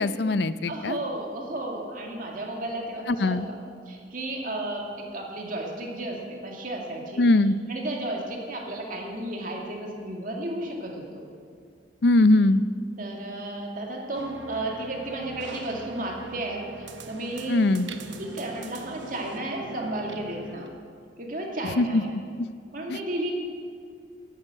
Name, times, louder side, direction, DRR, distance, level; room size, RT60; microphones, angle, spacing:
voice 1, 0.0-1.0 3.1-3.5 7.2-7.5 12.0-12.6 17.5-17.9 21.8-22.0 22.4-22.5 22.9-23.0, left 2 dB, 65° left, 14 dB, 0.5 m, -21 dB
voice 2, 0.7-3.6 3.9-7.3 7.7-11.2 13.0-16.6 17.1-17.6 18.2-20.7 21.2-22.1 22.7-23.3, right 1 dB, 50° right, 0 dB, 2.4 m, -33 dB
sound 1, 14.1-20.7, right 3 dB, 85° right, 1.1 m, -42 dB
11.5 x 11.0 x 7.8 m, 2.2 s
head